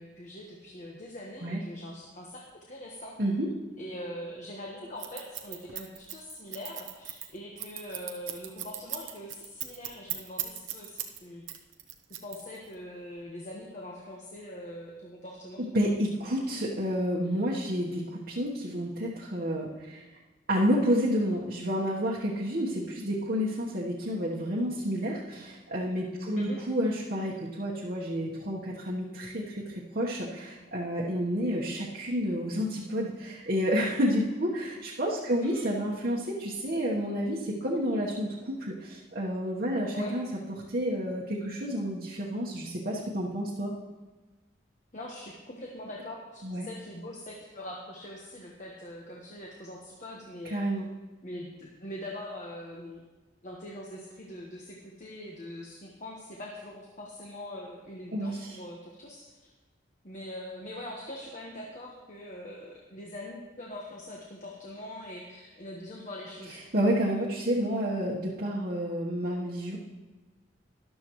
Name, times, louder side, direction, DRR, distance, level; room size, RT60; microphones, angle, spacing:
voice 1, 0.0-3.2 3.8-11.5 12.2-15.6 26.4-26.6 35.4-35.7 39.9-40.1 44.9-50.6 51.2-53.0 53.4-59.5 60.0-66.6, left 1 dB, 40° left, -2 dB, 1.2 m, -42 dB
Scissors, 5.0-11.2 11.5-12.7, right 13 dB, 90° right, 0.9 m, -37 dB
voice 2, 15.7-20.0 20.5-40.2 40.7-43.7 46.4-46.7 50.5-50.8 58.1-58.4 66.7-69.8, equal, 50° right, -5 dB, 1.2 m, -30 dB
13.0 x 11.5 x 3.1 m, 1.2 s
head